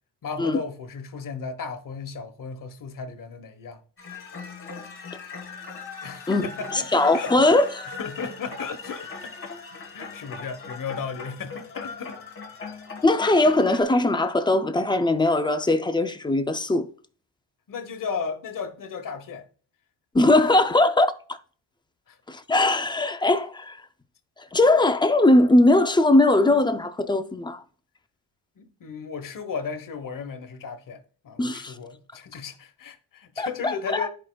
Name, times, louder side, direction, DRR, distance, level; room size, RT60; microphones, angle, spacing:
voice 1, 0.2-3.8 6.0-7.3 7.9-9.3 9.7-12.4 17.7-19.5 20.3-20.4 22.1-22.2 28.6-34.1, left 5 dB, 45° left, 1.0 m, -35 dB
sound 1, 4.0-13.8, left 4 dB, 30° left, 1.7 m, -39 dB
voice 2, 6.3-7.9 13.0-16.9 20.1-21.4 22.3-23.8 24.5-27.6 31.4-31.7 33.4-34.1, left 2 dB, 10° left, 0.3 m, -20 dB
12.5 x 4.9 x 2.2 m
wide cardioid pair, 170°, 44 cm